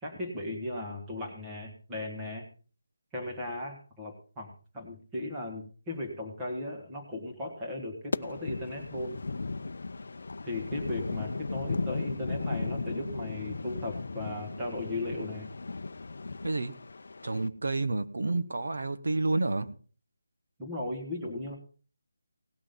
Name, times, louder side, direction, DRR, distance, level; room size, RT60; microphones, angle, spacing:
voice 1, 0.0-2.5 3.1-9.2 10.4-15.5 20.6-21.5, left 1 dB, 10° right, -1 dB, 1.6 m, -37 dB
sound 1, 8.1-17.5, left 3 dB, 50° left, 0.7 m, -36 dB
voice 2, 16.4-16.8 17.2-19.8, right 2 dB, 60° right, 10 dB, 1.2 m, -29 dB
18.0 x 6.2 x 5.2 m, 0.39 s
figure-of-eight pair, 180°, 0 cm